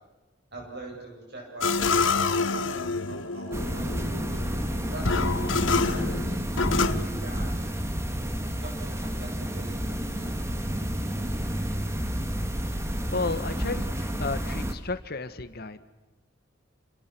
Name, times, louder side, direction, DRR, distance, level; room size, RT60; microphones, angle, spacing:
voice 1, 0.5-4.2 4.8-6.4 6.8-7.8 8.5-10.4, right 2 dB, 55° right, 1 dB, 7.8 m, -43 dB
sound 1, 1.6-7.0, left 4 dB, 80° left, 1.3 m, -27 dB
sound 2, 3.5-14.7, equal, 15° right, 2.0 m, -30 dB
voice 2, 13.1-15.9, left 3 dB, 50° left, 11 dB, 1.6 m, -33 dB
28.5 x 27.0 x 6.3 m, 1.1 s
head